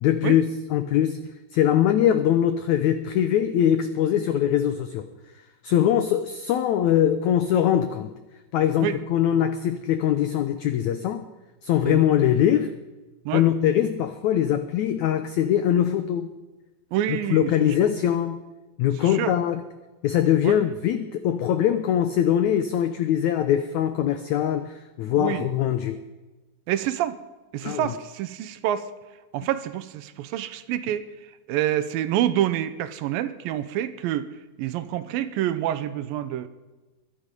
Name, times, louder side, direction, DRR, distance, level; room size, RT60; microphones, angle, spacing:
voice 1, 0.0-1.2 1.5-5.0 5.6-8.1 8.5-11.3 11.6-12.7 13.3-16.3 17.3-18.4 18.8-19.6 20.0-26.0 27.6-27.9, left 10 dB, 85° left, 10 dB, 1.6 m, -22 dB
voice 2, 16.9-17.5 19.0-19.3 20.4-20.6 25.2-25.5 26.7-27.2 27.5-28.9 29.3-31.0 31.5-34.3 34.6-36.5, right 12 dB, 80° right, 13 dB, 2.5 m, -27 dB
22.0 x 12.0 x 5.3 m, 1.2 s
omnidirectional pair, 4.2 m